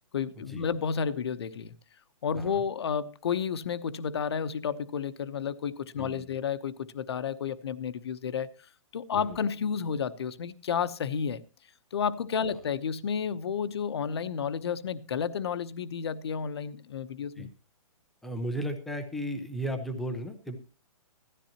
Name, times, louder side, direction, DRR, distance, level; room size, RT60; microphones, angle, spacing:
voice 1, 0.1-1.7 2.2-8.5 8.9-11.4 11.9-17.5, left 7 dB, 45° left, 1.0 m, -31 dB
voice 2, 18.2-20.6, equal, ahead, 0.6 m, -35 dB
17.0 x 13.5 x 2.9 m
hypercardioid pair, 180°, 18 cm